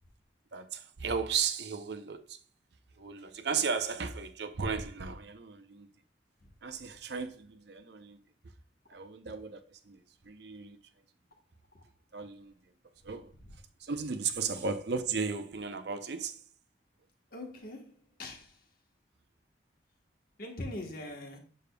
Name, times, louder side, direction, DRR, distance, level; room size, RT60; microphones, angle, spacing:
voice 1, 0.5-2.4 3.0-5.9 6.6-8.2 8.9-10.8 12.1-12.5 13.0-13.3 13.8-16.4, right 5 dB, 60° right, 0.6 m, -35 dB
voice 2, 17.3-17.9 18.2-18.6 20.4-21.4, left 1 dB, 50° left, 1.2 m, -41 dB
6.8 x 6.3 x 2.2 m
head